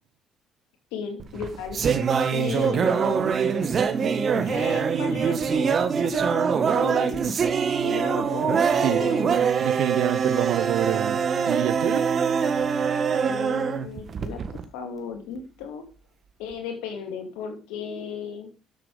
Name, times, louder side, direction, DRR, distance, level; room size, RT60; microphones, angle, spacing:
voice 1, 0.9-1.8 2.3-3.3 4.3-7.3 7.8-9.4 13.2-15.9 16.4-18.5, left 6 dB, 75° left, 2.8 m, -35 dB
sound 1, 1.2-14.6, right 6 dB, 50° right, 1.5 m, -24 dB
voice 2, 9.6-11.2 11.5-12.1, right 13 dB, 70° right, 0.8 m, -27 dB
12.5 x 7.5 x 5.1 m
hypercardioid pair, 50°, 0 cm